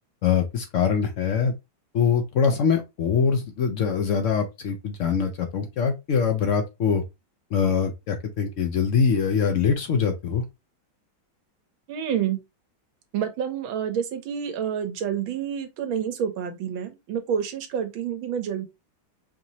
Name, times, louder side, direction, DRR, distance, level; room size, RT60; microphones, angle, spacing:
voice 1, 0.2-1.5 1.9-7.0 7.5-10.4, left 6 dB, 80° left, 0.6 m, -23 dB
voice 2, 11.9-12.4 13.1-18.7, right 8 dB, 90° right, 1.7 m, -28 dB
4.9 x 2.8 x 2.9 m
omnidirectional pair, 2.1 m